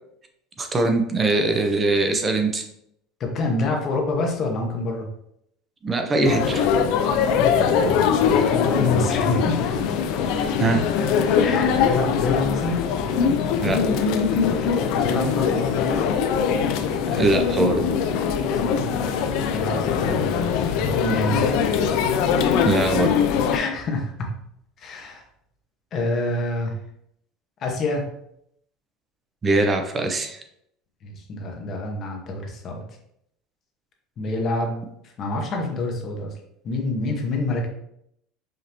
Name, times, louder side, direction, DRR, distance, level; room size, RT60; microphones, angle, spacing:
voice 1, 0.6-2.7 5.8-6.7 10.6-10.9 13.6-13.8 17.1-17.9 22.6-23.2 29.4-30.4, right 2 dB, 20° right, 5 dB, 0.5 m, -22 dB
voice 2, 3.2-5.1 7.3-9.7 11.4-12.8 14.6-16.1 18.5-18.9 19.5-21.5 23.5-24.3 24.8-25.2 25.9-26.7 27.6-28.0 31.0-32.8 34.2-34.8 35.2-36.3 36.6-37.7, left 2 dB, 35° left, 2 dB, 0.8 m, -27 dB
sound 1, 6.2-23.6, left 7 dB, 60° left, 0.4 m, -22 dB
5.0 x 2.6 x 2.9 m, 0.74 s
cardioid pair, 160°, 0 cm